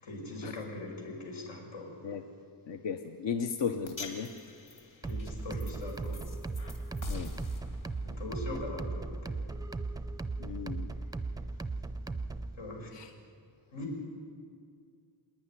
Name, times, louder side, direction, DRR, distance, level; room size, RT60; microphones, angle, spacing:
voice 1, 0.0-1.9 5.0-6.3 8.1-9.4 12.6-12.9 13.7-14.0, left 2 dB, 85° left, 0 dB, 5.2 m, -41 dB
voice 2, 2.7-4.3 7.1-7.3 10.4-10.9 12.9-13.1, left 6 dB, 70° left, 6 dB, 1.1 m, -35 dB
sound 1, 3.9-10.2, left 3 dB, 40° left, 2.4 m, -46 dB
sound 2, 5.0-12.5, right 3 dB, 10° right, 0.4 m, -37 dB
26.5 x 10.0 x 9.8 m, 2.3 s
wide cardioid pair, 180°, 45 cm